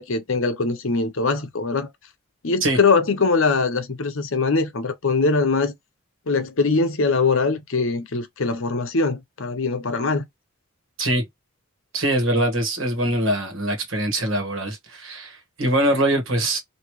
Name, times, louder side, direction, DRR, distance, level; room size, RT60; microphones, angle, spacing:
voice 1, 0.0-1.9 2.4-5.7 6.3-10.2, left 4 dB, 65° left, 0.8 m, -22 dB
voice 2, 11.9-16.6, right 1 dB, 60° right, 1.5 m, -23 dB
3.1 x 2.8 x 3.0 m
head